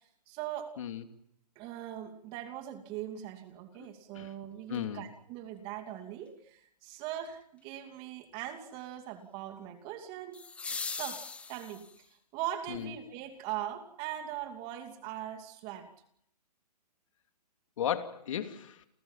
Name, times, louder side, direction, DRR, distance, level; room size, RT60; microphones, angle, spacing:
voice 1, 0.3-0.7 1.6-10.4 10.9-11.9 12.3-15.9, right 11 dB, 25° right, 2.8 m, -40 dB
voice 2, 4.7-5.0 12.7-12.9 17.8-18.9, left 9 dB, 50° left, 3.0 m, -35 dB
sound 1, 4.7-4.8 10.3-12.1 14.3-14.4, left 5 dB, 5° left, 1.1 m, -40 dB
29.5 x 28.5 x 5.8 m
hypercardioid pair, 150°, 21 cm